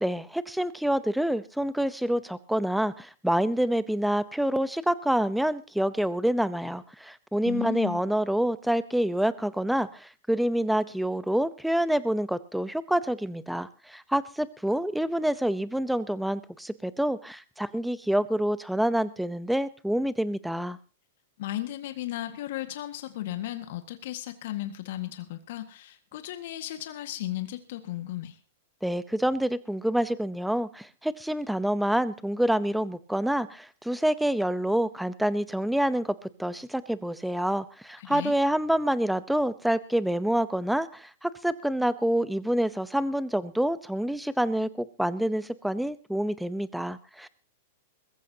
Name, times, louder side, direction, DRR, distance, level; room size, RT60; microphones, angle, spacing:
voice 1, 0.0-20.8 28.8-47.3, right 1 dB, ahead, 15 dB, 0.8 m, -27 dB
voice 2, 7.4-8.0 21.4-28.4 38.0-38.3, left 14 dB, 65° left, 8 dB, 1.7 m, -35 dB
21.5 x 15.0 x 2.9 m, 0.35 s
hypercardioid pair, 135°, 0 cm